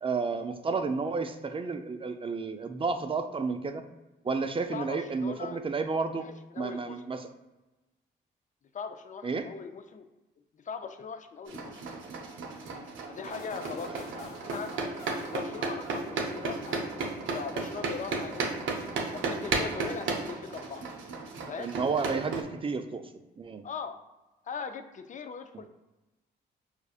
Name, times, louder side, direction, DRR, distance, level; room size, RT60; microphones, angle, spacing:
voice 1, 0.0-3.8 4.2-6.3 6.6-7.3 9.2-9.5 21.6-23.1 23.4-23.6, right 4 dB, 25° right, 8 dB, 0.4 m, -31 dB
voice 2, 4.7-5.6 6.2-7.0 8.7-10.1 10.5-11.8 13.1-14.7 15.2-18.6 19.1-20.9 21.5-21.7 23.6-24.0 24.4-25.7, left 6 dB, 40° left, 9 dB, 0.4 m, -40 dB
sound 1, 11.5-22.4, right 3 dB, 75° right, 0.6 m, -34 dB
sound 2, 13.3-16.3 16.6-17.3, left 1 dB, 85° left, 1.1 m, -49 dB
4.8 x 2.4 x 2.4 m, 1.1 s
cardioid pair, 65°, 20 cm